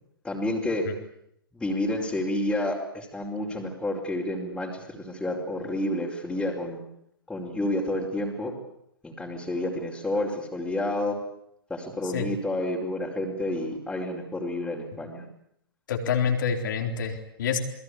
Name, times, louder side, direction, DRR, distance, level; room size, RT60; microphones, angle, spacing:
voice 1, 0.2-0.9 1.5-6.8 7.3-8.5 9.0-11.2 11.7-15.3, left 1 dB, 5° left, -4 dB, 5.0 m, -30 dB
voice 2, 15.9-17.6, left 7 dB, 55° left, 4 dB, 4.0 m, -27 dB
28.5 x 21.0 x 8.5 m, 0.74 s
figure-of-eight pair, 110°, 12 cm